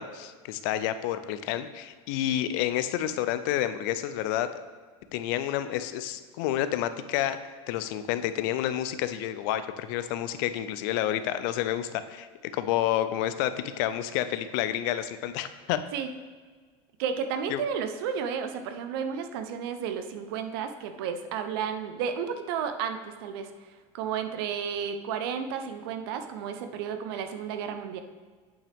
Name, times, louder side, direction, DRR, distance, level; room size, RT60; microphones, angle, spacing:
voice 1, 0.0-4.5 5.1-12.3 12.5-15.8 17.5-17.6, left 12 dB, 50° left, 11 dB, 0.4 m, -29 dB
voice 2, 17.0-23.5 23.9-28.0, right 7 dB, 60° right, 8 dB, 0.7 m, -32 dB
8.6 x 5.7 x 3.5 m, 1.5 s
supercardioid pair, 175°, 14 cm